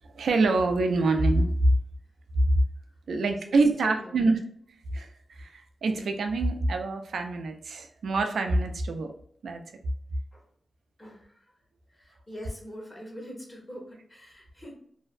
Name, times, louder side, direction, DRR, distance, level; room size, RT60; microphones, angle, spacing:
voice 1, 0.0-1.7 2.5-2.6 3.1-4.4 4.9-9.1 9.4-9.6, right 2 dB, 85° right, 5 dB, 0.4 m, -25 dB
voice 2, 2.8-3.5 3.8-4.4 10.3-10.5 11.0-11.5 11.9-14.7, equal, 25° left, -1 dB, 1.0 m, -44 dB
2.5 x 2.1 x 2.4 m, 0.62 s
cardioid pair, 55°, 0 cm